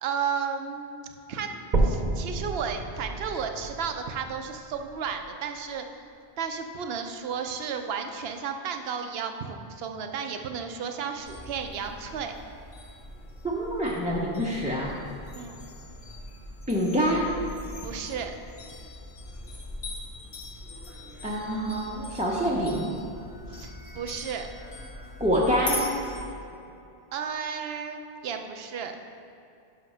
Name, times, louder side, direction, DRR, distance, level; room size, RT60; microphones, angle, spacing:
voice 1, 0.0-6.1 6.4-12.3 15.3-15.6 17.8-18.3 23.5-24.5 27.1-29.0, right 6 dB, 75° right, 6 dB, 0.8 m, -33 dB
sound 1, 1.7-5.7 6.3-6.4 7.0-7.1 7.4-7.5 8.3-8.4, right 2 dB, 45° right, 0.9 m, -30 dB
sound 2, 11.2-26.3, left 1 dB, 80° left, 1.5 m, -41 dB
voice 2, 13.4-15.0 16.7-17.3 21.2-22.9 25.2-25.9, equal, 10° right, -5 dB, 0.6 m, -26 dB
5.9 x 5.8 x 5.5 m, 2.7 s
omnidirectional pair, 1.1 m